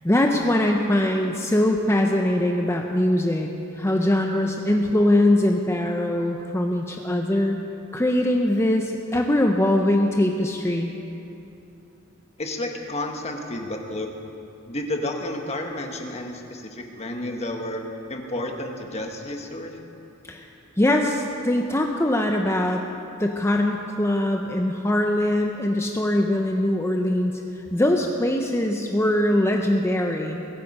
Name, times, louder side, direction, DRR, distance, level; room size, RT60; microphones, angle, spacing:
voice 1, 0.0-3.5 3.8-7.6 7.9-10.9 20.3-20.5 20.8-22.8 23.2-27.3 27.7-30.4, left 1 dB, 15° left, 2 dB, 0.6 m, -22 dB
voice 2, 12.4-14.1 14.7-17.8 18.1-19.7, left 1 dB, 30° left, 3 dB, 1.3 m, -31 dB
22.0 x 9.1 x 5.4 m, 2.8 s
head